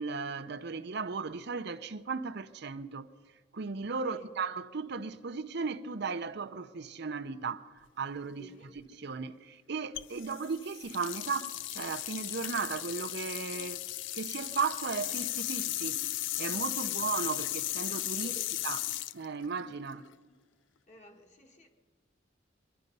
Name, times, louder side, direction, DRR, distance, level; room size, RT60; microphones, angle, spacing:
voice 1, 0.0-3.1 3.5-8.5 9.0-13.8 14.1-16.0 16.4-18.3 18.6-18.8 19.1-20.0, right 5 dB, 60° right, 0.6 m, -36 dB
voice 2, 4.0-4.4 8.4-8.8 13.3-13.8 16.8-17.3 18.2-18.6 19.9-20.4 20.9-21.7, equal, 40° left, 1.8 m, -54 dB
sound 1, 10.0-20.1, left 15 dB, 75° left, 0.4 m, -36 dB
23.5 x 11.5 x 5.4 m
head